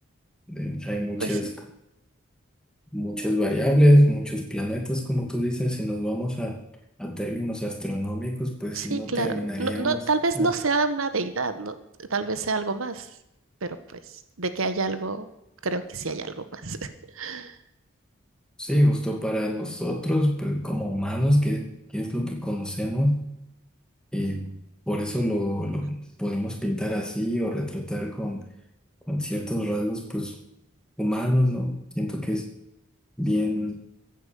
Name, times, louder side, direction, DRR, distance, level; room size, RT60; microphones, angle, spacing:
voice 1, 0.5-1.5 2.9-6.6 7.0-10.0 10.4-10.5 18.6-21.7 21.9-23.2 24.1-24.5 24.9-28.4 29.1-30.3 31.0-32.5 33.2-33.8, equal, 5° left, 1 dB, 2.3 m, -25 dB
voice 2, 8.7-13.1 13.6-15.3 15.6-17.6, right 3 dB, 80° right, 11 dB, 1.2 m, -28 dB
15.0 x 9.0 x 7.0 m, 0.86 s
head